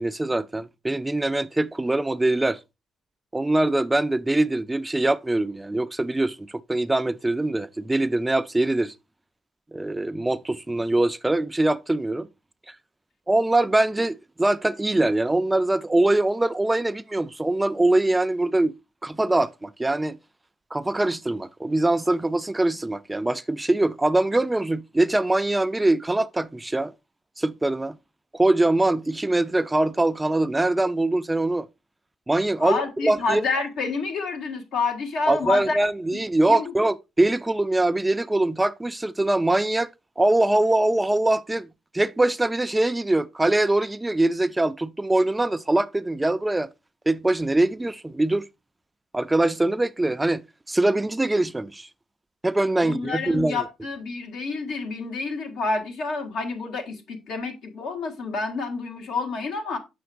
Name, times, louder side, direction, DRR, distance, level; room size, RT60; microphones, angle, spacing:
voice 1, 0.0-2.6 3.3-8.9 9.7-12.3 12.7-12.8 13.3-18.7 19.0-20.2 20.7-26.9 27.4-28.0 28.3-31.7 32.3-33.4 35.3-39.9 40.2-41.7 41.9-46.7 47.1-48.4 49.1-51.9 52.4-53.6, right 2 dB, 15° right, 0.3 m, -23 dB
voice 2, 32.6-35.8 36.1-36.2 36.5-36.7 52.8-59.8, left 4 dB, 75° left, 1.6 m, -29 dB
7.7 x 5.8 x 2.5 m
cardioid pair, 90°, 0 cm